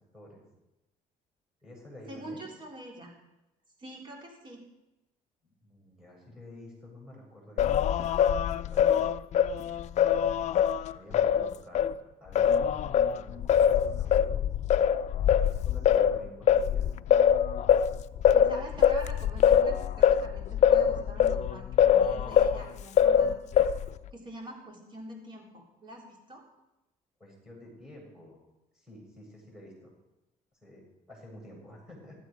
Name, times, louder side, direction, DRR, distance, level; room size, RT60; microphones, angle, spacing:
voice 1, 0.1-0.4 1.6-2.5 5.4-9.0 10.2-10.4 10.8-14.2 14.8-14.9 15.5-16.9 27.2-28.4 28.7-29.9 30.6-30.8 31.1-32.2, left 1 dB, 5° right, -2 dB, 6.6 m, -50 dB
voice 2, 2.1-3.2 3.8-4.6 18.3-23.7 24.1-26.4, right 1 dB, 35° right, 0 dB, 3.9 m, -45 dB
Singing, 7.6-11.9 12.3-22.6 23.0-24.0, left 9 dB, 55° left, 0.5 m, -23 dB
16.0 x 12.5 x 5.1 m, 0.95 s
cardioid pair, 135°, 15 cm